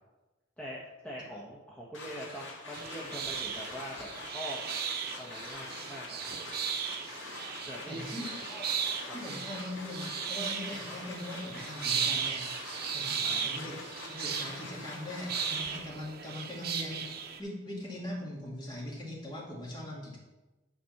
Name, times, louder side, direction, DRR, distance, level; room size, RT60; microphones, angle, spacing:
voice 1, 0.6-4.6 5.2-6.3 7.7-8.3 9.0-9.1 13.1-13.5, equal, 5° left, -5 dB, 1.0 m, -43 dB
sound 1, 1.9-15.8, left 3 dB, 85° left, 1.8 m, -45 dB
sound 2, 2.7-17.4, right 7 dB, 55° right, 0.8 m, -36 dB
voice 2, 7.9-8.6 9.1-13.8 14.1-20.2, left 1 dB, 25° left, -3 dB, 2.2 m, -41 dB
9.2 x 4.2 x 5.8 m, 1.1 s
head